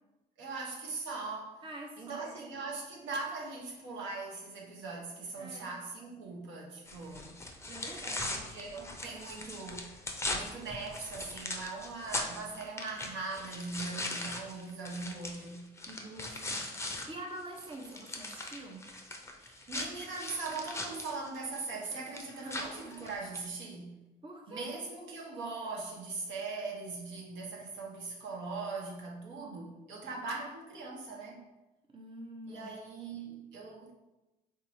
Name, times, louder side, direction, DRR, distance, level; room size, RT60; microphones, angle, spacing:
voice 1, 0.4-1.6 2.0-7.3 8.3-10.0 10.3-15.6 19.4-24.0 24.5-31.5 32.4-33.9, right 3 dB, 65° right, -2 dB, 1.0 m, -40 dB
voice 2, 1.6-2.6 5.4-5.7 7.7-8.4 15.9-18.9 22.4-22.6 24.2-24.7 31.9-32.7, right 1 dB, 25° right, 0 dB, 0.7 m, -46 dB
sound 1, 6.9-17.1 17.4-23.5, left 2 dB, 15° left, 0.6 m, -40 dB
3.7 x 2.8 x 2.7 m, 1.0 s
hypercardioid pair, 60°, 21 cm